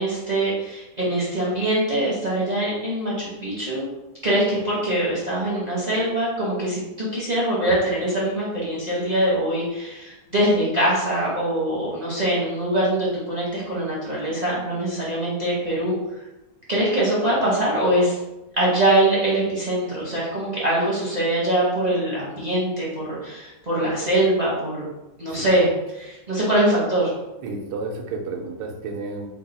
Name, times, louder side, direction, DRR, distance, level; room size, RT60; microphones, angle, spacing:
voice 1, 0.0-3.9 4.2-16.0 16.7-18.2 18.5-24.9 25.2-27.1, right 1 dB, 40° right, -7 dB, 0.6 m, -23 dB
voice 2, 27.4-29.3, right 3 dB, 85° right, 2 dB, 1.3 m, -31 dB
3.5 x 2.3 x 3.9 m, 0.98 s
omnidirectional pair, 1.9 m